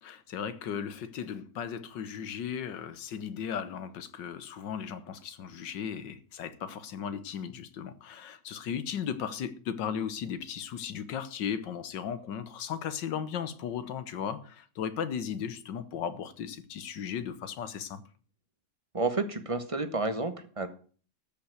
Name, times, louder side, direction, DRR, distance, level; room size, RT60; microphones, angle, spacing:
voice 1, 0.0-18.0, left 8 dB, 85° left, 1.7 m, -36 dB
voice 2, 18.9-20.7, right 3 dB, 20° right, 1.2 m, -30 dB
13.5 x 5.8 x 7.8 m
omnidirectional pair, 1.9 m